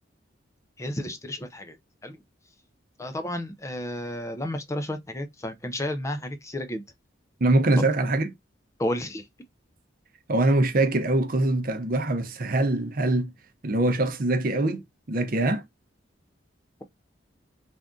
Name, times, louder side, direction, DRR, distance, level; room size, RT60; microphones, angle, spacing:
voice 1, 0.8-1.8 2.0-2.2 3.0-6.8 8.8-9.3, left 1 dB, 15° left, 0.4 m, -32 dB
voice 2, 7.4-8.3 10.3-13.3 13.6-15.6, right 2 dB, 45° right, 0.6 m, -23 dB
3.5 x 2.5 x 3.6 m
head